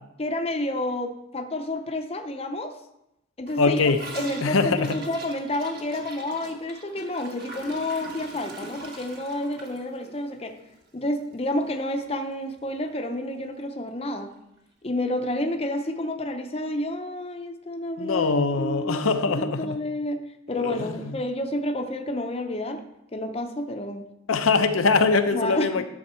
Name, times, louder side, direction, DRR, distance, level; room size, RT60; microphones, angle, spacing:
voice 1, 0.2-2.7 3.4-3.8 4.1-10.5 10.9-14.3 14.8-22.8 23.1-24.1 25.3-25.8, left 1 dB, 30° left, 0.7 m, -30 dB
Gurgling / Toilet flush, 3.5-11.7 12.0-12.1 12.4-12.8 13.1-13.2 13.5-13.6 14.6-14.7, right 2 dB, 50° right, 1.4 m, -42 dB
voice 2, 3.6-4.0 4.4-4.9 18.0-19.8 20.5-21.1 24.3-25.8, left 4 dB, 90° left, 0.7 m, -23 dB
11.0 x 6.4 x 4.4 m
head